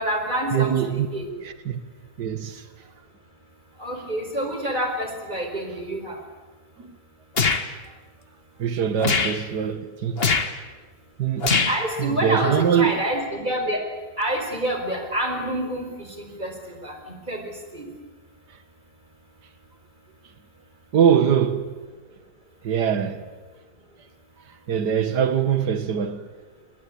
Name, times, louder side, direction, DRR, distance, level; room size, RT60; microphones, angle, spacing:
voice 1, 0.0-1.3 3.8-6.2 11.7-13.8 14.2-17.0 17.3-17.9, right 1 dB, 25° right, 4.8 m, -27 dB
voice 2, 0.5-1.1 1.4-1.8 2.2-2.7 6.8-7.0 8.6-10.3 11.2-11.6 12.0-13.0 20.9-21.8 22.6-23.2 24.5-26.2, right 8 dB, 80° right, 2.1 m, -23 dB
sound 1, 7.4-7.6 9.0-9.4 10.2-10.5 11.4-11.8, left 4 dB, 35° left, 1.7 m, -21 dB
28.0 x 21.5 x 8.7 m
omnidirectional pair, 1.8 m